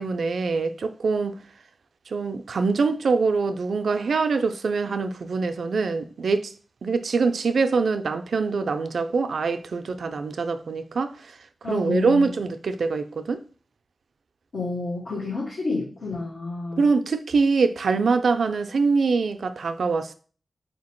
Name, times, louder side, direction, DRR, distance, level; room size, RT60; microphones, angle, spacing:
voice 1, 0.0-1.4 2.1-6.5 6.8-11.3 11.7-13.4 16.8-20.1, right 4 dB, 80° right, 0.3 m, -24 dB
voice 2, 11.6-12.3 14.5-16.9, left 4 dB, 85° left, 1.1 m, -30 dB
3.7 x 2.8 x 4.4 m
cardioid pair, 45°, 0 cm